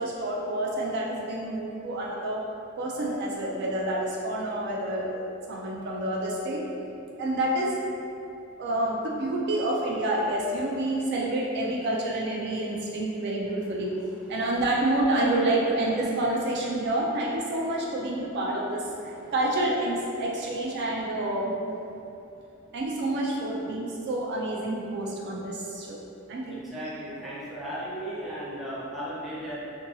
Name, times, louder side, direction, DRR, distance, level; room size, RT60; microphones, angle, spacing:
voice 1, 0.0-2.5 2.8-6.6 7.2-7.8 8.6-13.9 14.3-21.5 22.7-26.0 26.3-26.6, right 1 dB, 55° right, -3 dB, 0.3 m, -28 dB
voice 2, 26.5-29.6, right 1 dB, ahead, -9 dB, 0.5 m, -36 dB
2.7 x 2.6 x 2.6 m, 2.8 s
head